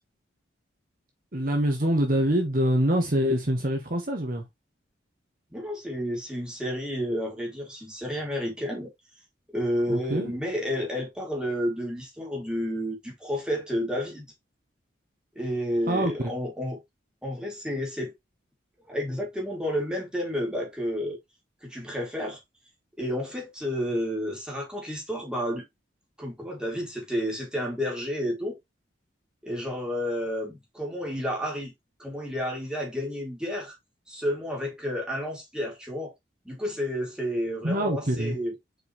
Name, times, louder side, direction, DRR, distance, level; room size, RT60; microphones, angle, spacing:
voice 1, 1.3-4.4 9.9-10.3 15.9-16.3 37.6-38.4, equal, 45° right, 1.3 m, -25 dB
voice 2, 5.5-8.9 9.5-14.3 15.3-16.8 17.2-18.1 18.8-21.2 21.6-22.4 23.0-25.6 26.2-28.6 29.4-31.7 32.0-33.8 34.1-36.1 36.4-38.5, equal, 5° right, 2.8 m, -31 dB
6.6 x 4.7 x 3.2 m
head